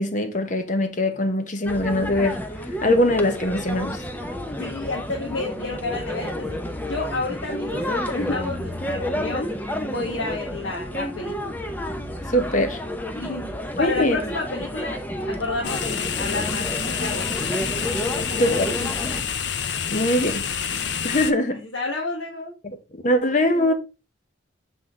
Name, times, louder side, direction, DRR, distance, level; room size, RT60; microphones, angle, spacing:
voice 1, 0.0-2.4 2.8-4.0 12.3-12.8 13.8-14.2 18.4-18.7 19.9-20.5 21.0-21.6 22.6-23.7, left 1 dB, 40° left, 0.9 m, -22 dB
sound 1, 1.6-19.2, equal, 10° left, 0.6 m, -31 dB
voice 2, 4.6-6.6 6.8-9.5 9.8-11.5 13.1-13.5 13.8-15.0 15.2-17.5 18.1-18.9 21.7-22.6 23.5-23.7, left 3 dB, 90° left, 1.5 m, -30 dB
sound 2, 15.6-21.3, left 7 dB, 60° left, 0.6 m, -28 dB
7.6 x 3.8 x 3.6 m
head